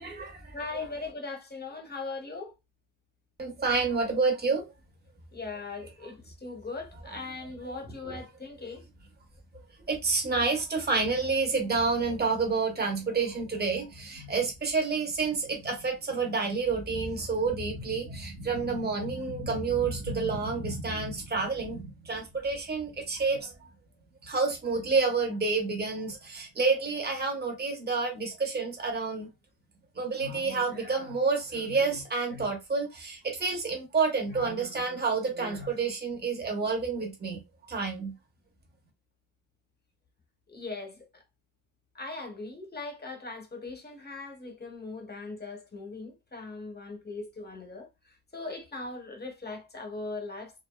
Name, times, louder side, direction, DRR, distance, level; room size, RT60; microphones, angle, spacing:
voice 1, 0.0-0.9 3.4-4.7 8.1-8.2 9.9-23.5 24.2-29.3 30.0-37.4 37.7-38.1, right 4 dB, 25° right, 0.8 m, -29 dB
voice 2, 0.5-2.5 5.3-8.8 40.5-41.1 41.9-47.9 48.3-50.6, left 3 dB, 25° left, 0.8 m, -39 dB
2.5 x 2.2 x 2.2 m
wide cardioid pair, 95°, 39 cm